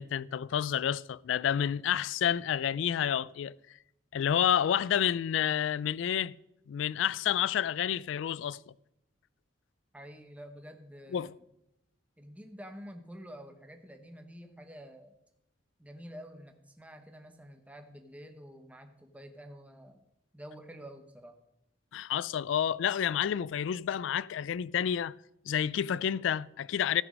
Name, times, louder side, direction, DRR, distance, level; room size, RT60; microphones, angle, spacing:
voice 1, 0.0-3.5 4.1-6.3 6.7-8.6 11.1-11.3 21.9-25.1 25.5-27.0, left 9 dB, 85° left, 0.3 m, -29 dB
voice 2, 9.9-11.3 12.2-15.2 15.8-20.0 20.3-21.4, equal, 10° right, 1.0 m, -48 dB
14.0 x 6.1 x 5.2 m
head